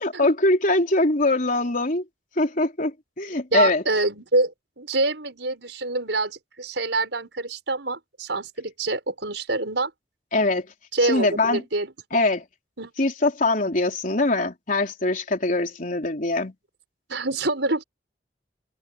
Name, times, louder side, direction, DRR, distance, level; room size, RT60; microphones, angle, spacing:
voice 1, 0.0-2.0 2.4-3.8 10.3-10.7 11.0-11.6 12.1-12.4 13.0-16.5, left 2 dB, 50° left, 3.9 m, -22 dB
voice 2, 3.5-9.9 10.9-11.9 12.8-12.9 17.1-17.8, right 2 dB, 85° right, 5.4 m, -26 dB
head